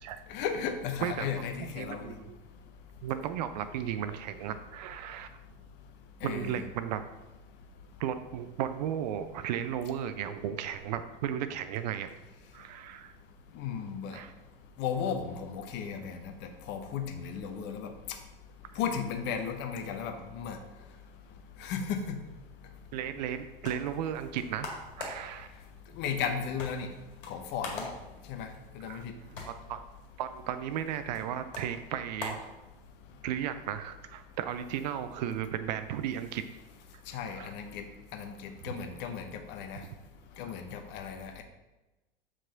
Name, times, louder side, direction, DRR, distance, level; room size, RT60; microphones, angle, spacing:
voice 1, 0.3-2.1 6.2-6.6 13.5-14.2 14.8-16.3 16.7-17.9 18.8-20.6 21.6-22.2 26.0-26.9 27.3-27.9 28.3-28.5 28.7-29.1 37.1-37.8 38.1-39.8 40.4-41.4, left 7 dB, 35° left, 6 dB, 0.9 m, -35 dB
voice 2, 1.6-2.3 3.0-5.3 6.2-7.0 8.0-12.1 12.5-13.1 14.1-14.3 18.7-18.8 22.9-25.5 28.9-29.0 29.4-29.8 30.2-32.5 33.2-36.4 37.3-37.5 39.8-39.9, right 9 dB, 45° right, 10 dB, 0.5 m, -35 dB
sound 1, 23.6-33.2, left 3 dB, 60° left, 2.0 m, -46 dB
7.4 x 5.0 x 3.8 m, 1.1 s
figure-of-eight pair, 85°, 29 cm